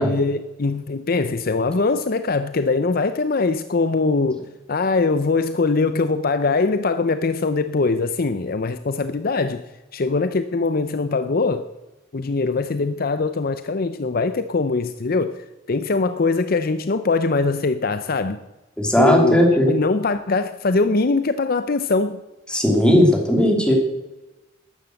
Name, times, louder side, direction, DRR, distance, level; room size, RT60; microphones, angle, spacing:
voice 1, 0.0-11.7 12.1-18.4 19.0-22.2, left 3 dB, 50° left, 0.6 m, -22 dB
voice 2, 18.8-19.7 22.5-23.7, equal, 5° left, 2.8 m, -16 dB
13.0 x 11.0 x 7.7 m
head